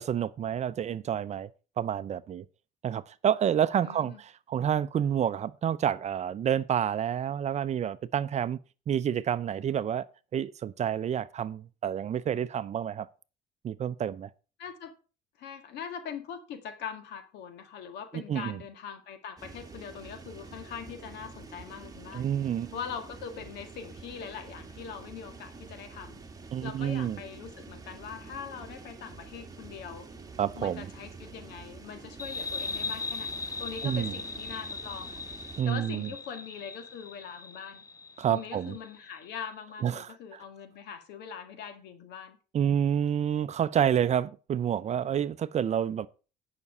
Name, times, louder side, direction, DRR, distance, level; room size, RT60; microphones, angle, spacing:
voice 1, 0.0-1.5 1.8-2.4 2.8-8.6 8.9-10.1 10.3-13.1 13.6-14.3 18.1-18.6 22.1-22.7 26.5-27.2 30.4-30.9 33.8-34.1 35.6-36.1 38.2-38.8 39.8-40.4 42.5-46.1, right 9 dB, 40° right, 0.6 m, -29 dB
voice 2, 3.8-4.2 14.6-14.9 15.4-22.3 22.7-26.2 26.6-30.1 30.5-35.2 35.7-37.8 38.3-42.4, left 7 dB, 80° left, 1.9 m, -42 dB
sound 1, 19.4-35.6, right 4 dB, 20° right, 1.5 m, -47 dB
sound 2, 32.2-39.4, left 3 dB, 20° left, 0.6 m, -39 dB
9.7 x 6.0 x 5.4 m
cardioid pair, 110°, 17 cm